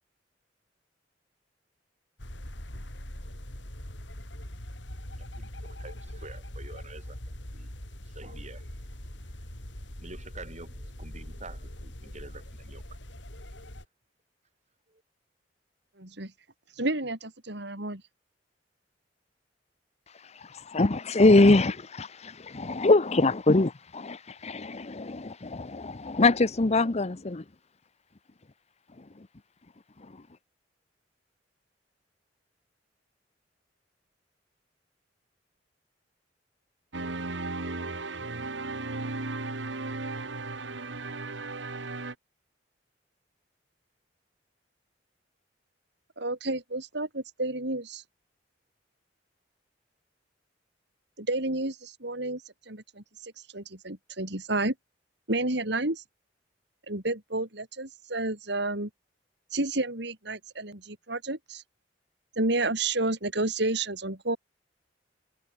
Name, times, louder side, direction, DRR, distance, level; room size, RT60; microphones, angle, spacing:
sound 1, 2.2-13.9, left 1 dB, 85° left, 5.3 m, -42 dB
voice 1, 5.8-7.2 7.5-7.8 8.1-8.7 10.0-12.8 14.9-15.0, right 3 dB, 40° right, 6.9 m, -47 dB
voice 2, 16.0-16.3 16.8-18.0 46.2-48.0 51.2-52.4 52.7-54.7 55.3-56.0 56.9-58.9 59.5-61.6 62.4-64.4, right 2 dB, 70° right, 4.8 m, -30 dB
voice 3, 20.7-27.4, left 2 dB, 35° left, 0.9 m, -23 dB
sound 2, 36.9-42.1, right 3 dB, 85° right, 2.1 m, -35 dB
head